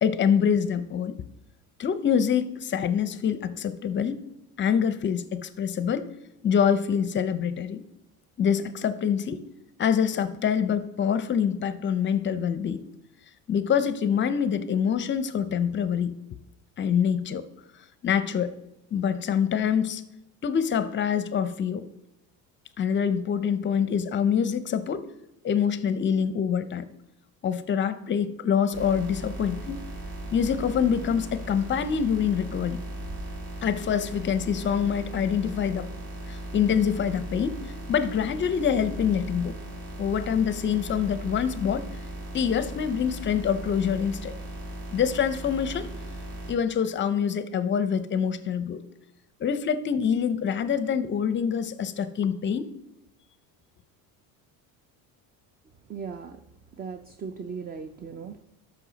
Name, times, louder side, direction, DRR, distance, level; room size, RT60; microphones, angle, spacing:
voice 1, 0.0-1.2 1.8-4.2 4.6-6.1 6.4-7.8 8.4-9.4 9.8-12.8 13.5-16.2 16.8-17.5 18.0-18.6 18.9-20.0 20.4-21.9 22.8-25.1 25.4-26.9 27.4-29.9 30.3-32.8 33.6-35.9 36.3-37.6 37.9-39.6 40.0-41.9 42.3-44.4 44.9-45.9 46.5-48.8 49.4-52.7, left 7 dB, 30° left, 13 dB, 0.6 m, -25 dB
sound 1, 28.7-46.5, right 1 dB, 85° right, 3.5 m, -37 dB
voice 2, 55.9-56.4 56.8-58.4, right 5 dB, 25° right, 9 dB, 0.4 m, -37 dB
12.5 x 5.9 x 4.0 m, 0.85 s
cardioid pair, 125°, 42 cm